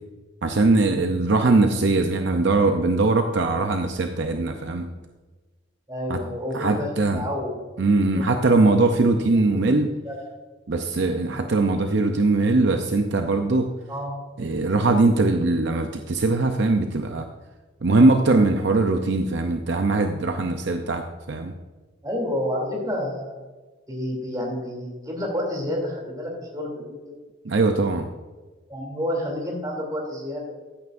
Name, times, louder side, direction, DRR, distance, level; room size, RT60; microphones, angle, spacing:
voice 1, 0.4-4.9 6.1-6.2 6.5-7.2 7.8-9.9 10.7-13.7 14.4-17.2 17.8-21.5 27.4-28.1, right 3 dB, 60° right, 5 dB, 0.6 m, -21 dB
voice 2, 5.9-6.9 7.1-8.3 8.6-9.0 9.5-9.6 10.0-10.2 13.9-14.2 22.0-23.4 23.9-27.0 28.7-30.5, left 1 dB, 20° right, -1 dB, 2.9 m, -30 dB
14.5 x 9.4 x 2.6 m, 1.3 s
head